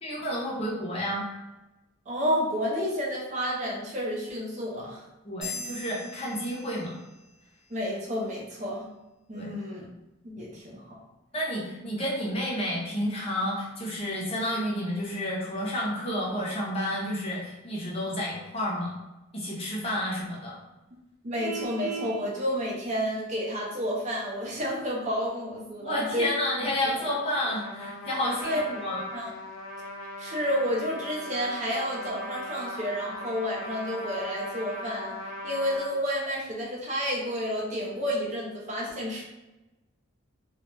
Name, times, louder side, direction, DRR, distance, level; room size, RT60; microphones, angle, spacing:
voice 1, 0.0-1.3 5.2-6.9 9.3-9.5 11.3-18.9 19.3-20.6 25.8-29.0, left 1 dB, 25° left, -4 dB, 0.5 m, -30 dB
voice 2, 2.1-5.0 7.7-8.9 9.3-9.9 10.2-11.0 21.2-26.3 26.8-27.0 28.4-28.6 29.1-29.3 30.2-35.2 35.4-39.2, equal, 35° right, -2 dB, 0.4 m, -30 dB
sound 1, 5.4-7.3, left 4 dB, ahead, 0.8 m, -40 dB
Vehicle horn car horn honking, 21.4-22.2, right 4 dB, 90° right, 0.7 m, -35 dB
Trumpet, 27.4-35.9, left 1 dB, 75° left, 0.4 m, -39 dB
2.2 x 2.1 x 3.0 m, 1.0 s
head